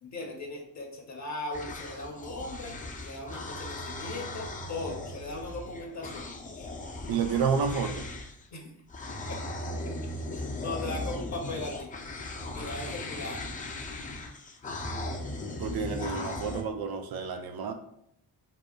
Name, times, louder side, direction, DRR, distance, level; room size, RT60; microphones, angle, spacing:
voice 1, 0.0-2.8 3.0-6.7 8.5-8.7 9.3-9.4 10.3-11.9 12.5-13.5, left 2 dB, 40° left, 2 dB, 0.7 m, -38 dB
sound 1, 1.5-8.5 8.9-16.6, left 2 dB, 20° left, 0.3 m, -38 dB
voice 2, 7.1-8.1 15.6-17.7, right 6 dB, 60° right, 7 dB, 0.5 m, -30 dB
2.8 x 2.2 x 2.2 m, 0.75 s
supercardioid pair, 50°, 43 cm